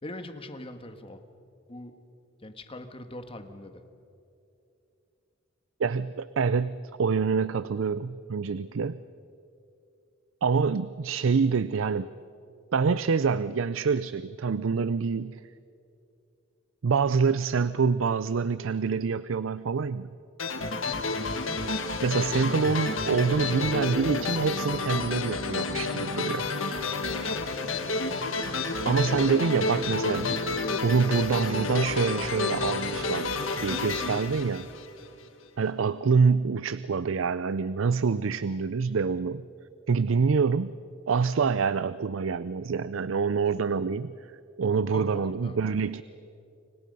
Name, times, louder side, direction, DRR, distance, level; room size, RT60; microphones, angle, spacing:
voice 1, 0.0-1.2 1.7-2.0 2.4-3.8 20.6-21.0 27.0-27.4 34.0-34.2 44.9-45.6, left 1 dB, 30° left, 7 dB, 1.6 m, -42 dB
voice 2, 5.8-9.0 10.4-12.1 12.7-15.4 16.8-20.1 22.0-26.5 28.8-30.5 30.8-33.3 33.6-34.7 35.6-39.5 39.9-40.8 41.1-44.1 44.6-46.0, right 5 dB, 80° right, 16 dB, 0.5 m, -26 dB
sound 1, 20.4-35.2, left 3 dB, 85° left, 1.9 m, -30 dB
30.0 x 25.0 x 5.5 m, 2.6 s
head